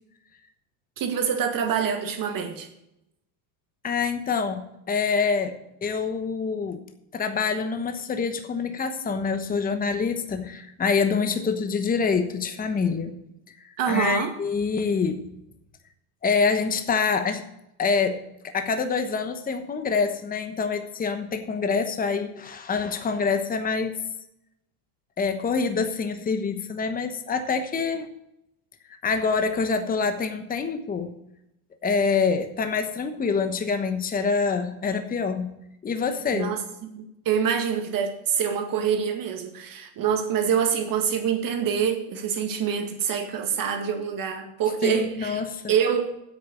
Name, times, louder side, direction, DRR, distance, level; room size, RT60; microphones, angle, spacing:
voice 1, 1.0-2.7 13.8-14.3 36.3-45.4 45.7-46.1, right 7 dB, 45° right, 5 dB, 2.0 m, -26 dB
voice 2, 3.8-5.5 5.8-6.8 7.1-13.2 13.9-15.2 16.2-17.4 17.8-18.2 18.5-23.9 25.2-28.1 29.0-31.1 31.8-35.5 35.8-36.5 44.8-45.6, left 5 dB, 20° left, 8 dB, 1.1 m, -26 dB
8.3 x 6.6 x 8.2 m, 0.84 s
supercardioid pair, 110°, 46 cm